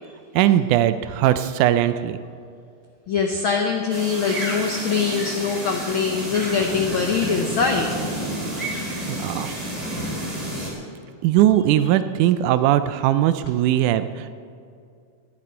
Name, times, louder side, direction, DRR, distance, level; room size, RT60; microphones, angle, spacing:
voice 1, 0.4-2.2 9.1-9.5 11.2-14.3, right 12 dB, 80° right, 12 dB, 2.0 m, -19 dB
voice 2, 3.1-7.9 9.0-9.1, left 5 dB, 80° left, 2 dB, 1.1 m, -23 dB
sound 1, 3.9-10.7, right 1 dB, 10° right, 2.7 m, -30 dB
18.0 x 11.0 x 4.4 m, 2.4 s
omnidirectional pair, 3.6 m